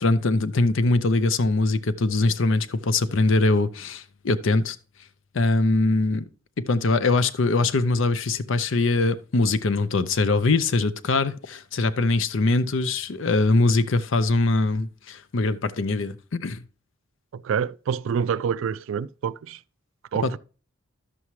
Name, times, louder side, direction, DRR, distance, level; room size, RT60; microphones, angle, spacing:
voice 1, 0.0-4.8 5.3-6.3 6.7-16.6 20.2-20.3, left 3 dB, 65° left, 0.6 m, -22 dB
voice 2, 17.3-19.6 20.1-20.4, right 7 dB, 70° right, 0.3 m, -27 dB
11.0 x 7.0 x 3.1 m
head